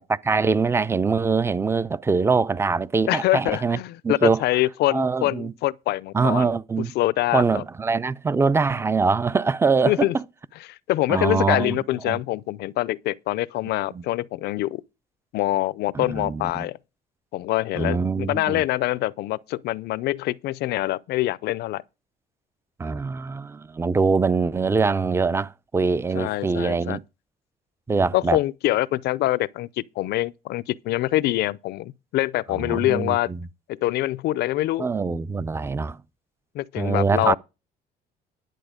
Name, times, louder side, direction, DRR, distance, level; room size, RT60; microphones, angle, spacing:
voice 1, 0.3-3.8 4.0-4.4 4.9-5.5 6.1-6.9 7.3-10.2 11.1-11.8 12.1-12.2 13.9-14.0 15.9-16.7 17.7-18.6 22.8-27.0 27.9-28.4 32.6-33.4 34.8-36.0 36.8-37.4, right 4 dB, 15° right, 0.5 m, -23 dB
voice 2, 3.1-7.6 9.9-10.2 10.7-14.8 15.3-16.8 17.3-21.8 26.1-27.0 28.1-33.3 33.7-34.9 36.5-37.4, left 16 dB, 75° left, 0.6 m, -25 dB
11.0 x 7.8 x 5.0 m
cardioid pair, 110°, 17 cm